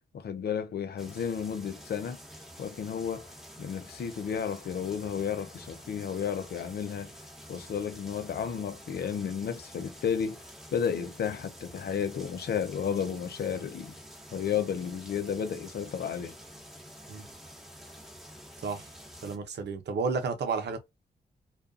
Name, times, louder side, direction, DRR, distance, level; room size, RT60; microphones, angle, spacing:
voice 1, 0.1-2.2 2.6-3.3 3.6-7.1 7.5-10.4 10.7-13.9 14.3-16.3, left 7 dB, 70° left, 0.6 m, -32 dB
sound 1, 1.0-19.4, equal, ahead, 0.9 m, -49 dB
voice 2, 18.6-18.9 19.2-20.8, right 5 dB, 80° right, 0.7 m, -32 dB
2.4 x 2.3 x 2.4 m
cardioid pair, 60°, 17 cm